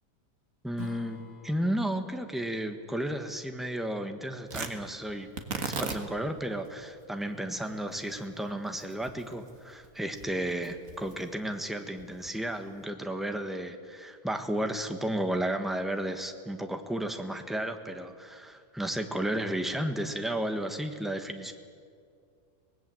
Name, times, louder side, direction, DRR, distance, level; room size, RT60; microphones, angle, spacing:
voice 1, 0.6-21.5, right 1 dB, ahead, 6 dB, 1.2 m, -33 dB
Strum, 0.7-5.9, left 4 dB, 35° left, 0.9 m, -52 dB
Tearing, 4.5-12.8, right 5 dB, 60° right, 1.9 m, -41 dB
24.5 x 19.0 x 7.8 m, 2.2 s
omnidirectional pair, 1.7 m